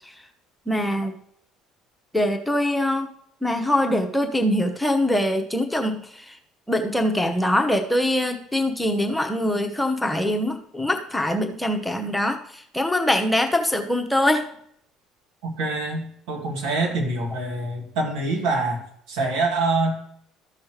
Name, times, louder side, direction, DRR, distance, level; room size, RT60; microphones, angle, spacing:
voice 1, 0.7-1.2 2.1-3.1 3.4-6.4 6.7-14.5, left 1 dB, 5° left, 4 dB, 1.0 m, -23 dB
voice 2, 15.4-19.9, right 2 dB, 65° right, -1 dB, 2.5 m, -25 dB
13.5 x 6.0 x 3.2 m, 0.68 s
figure-of-eight pair, 60°, 0 cm